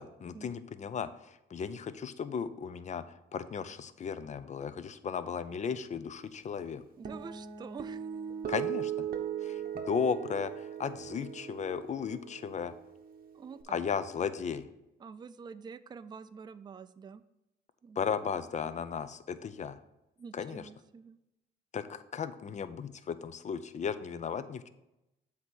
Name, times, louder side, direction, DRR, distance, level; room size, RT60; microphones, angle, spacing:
voice 1, 0.0-6.8 8.5-9.1 9.4-12.7 13.7-14.7 18.0-19.8 20.3-20.6 21.7-24.7, left 6 dB, 35° left, 13 dB, 0.5 m, -35 dB
voice 2, 7.0-8.1 13.3-13.8 15.0-17.2 17.8-18.1 20.2-21.2, right 5 dB, 20° right, 12 dB, 0.3 m, -47 dB
Guitar, 7.1-13.6, right 9 dB, 50° right, 0.8 m, -39 dB
7.8 x 2.9 x 6.0 m, 0.92 s
cardioid pair, 90°, 20 cm